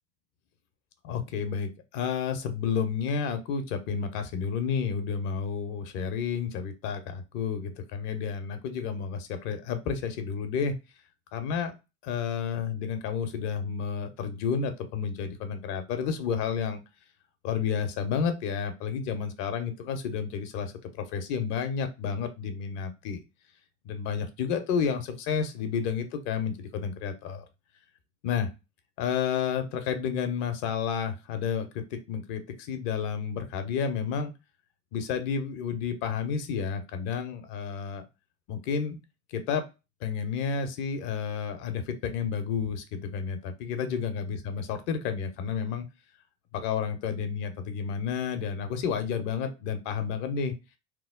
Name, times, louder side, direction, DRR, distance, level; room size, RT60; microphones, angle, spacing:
voice 1, 1.0-10.7 11.3-11.7 12.0-16.8 17.4-23.2 23.8-27.4 28.2-28.5 29.0-34.3 34.9-38.0 38.5-39.0 39.3-39.6 40.0-45.8 46.5-50.5, left 6 dB, 60° left, 8 dB, 0.8 m, -31 dB
3.0 x 2.0 x 3.6 m, 0.27 s
hypercardioid pair, 65°, 38 cm